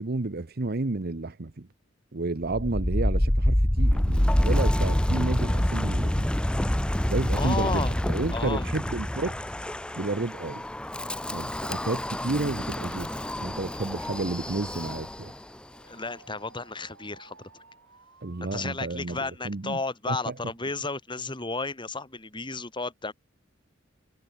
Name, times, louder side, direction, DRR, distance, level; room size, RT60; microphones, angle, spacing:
voice 1, 0.0-1.7 2.1-6.3 7.1-9.4 9.9-10.6 11.3-13.1 13.4-15.3 18.2-19.8 20.1-20.3, right 2 dB, 50° right, 0.9 m, -31 dB
Wind, 2.4-15.4, equal, 5° left, 0.4 m, -27 dB
voice 2, 7.2-8.0 8.3-8.7 15.9-17.6 18.5-23.1, left 3 dB, 25° left, 3.3 m, -33 dB
Alarm, 11.3-18.5 18.9-19.5, right 4 dB, 90° right, 6.0 m, -56 dB
head